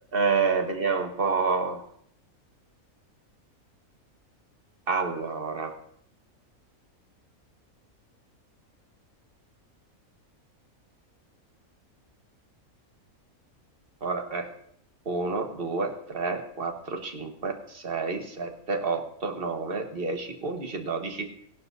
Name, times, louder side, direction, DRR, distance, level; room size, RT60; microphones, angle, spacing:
voice 1, 0.1-1.8 4.9-5.7 14.0-14.5 15.1-21.3, right 4 dB, 40° right, 4 dB, 1.4 m, -29 dB
19.0 x 11.5 x 2.6 m, 0.68 s
omnidirectional pair, 1.5 m